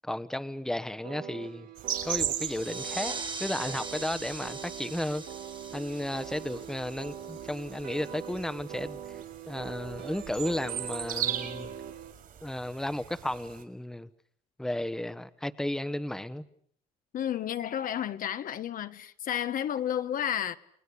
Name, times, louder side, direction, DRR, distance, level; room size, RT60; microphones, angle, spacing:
voice 1, 0.0-1.7 2.0-3.1 3.4-5.2 5.7-9.0 9.5-11.7 12.4-14.1 14.6-16.4, left 1 dB, 5° left, 1.1 m, -33 dB
sound 1, 1.0-12.1, right 9 dB, 80° right, 3.1 m, -43 dB
sound 2, 1.8-13.6, right 9 dB, 60° right, 4.2 m, -39 dB
sound 3, 2.3-7.6, right 4 dB, 25° right, 1.7 m, -41 dB
voice 2, 17.1-20.6, left 10 dB, 55° left, 1.2 m, -31 dB
30.0 x 20.0 x 8.5 m
cardioid pair, 110°, 17 cm